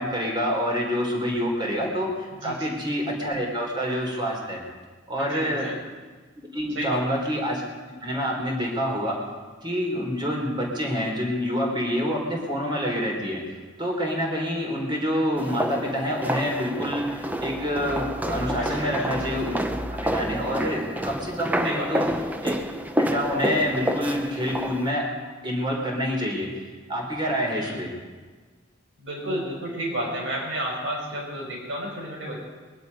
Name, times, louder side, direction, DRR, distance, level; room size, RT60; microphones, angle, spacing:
voice 1, 0.0-4.6 5.1-5.7 6.5-7.6 8.0-9.2 9.6-13.4 13.8-22.1 22.4-22.6 22.9-25.1 25.4-26.5 26.9-27.9, equal, 25° right, -1 dB, 3.5 m, -27 dB
voice 2, 2.4-2.8 5.2-5.7 6.7-7.0 18.6-19.1 21.6-22.0 27.6-27.9 29.0-32.4, right 1 dB, 75° right, -1 dB, 5.3 m, -31 dB
sound 1, 15.4-24.9, equal, 10° right, 0.7 m, -29 dB
21.5 x 11.0 x 5.4 m, 1.4 s
head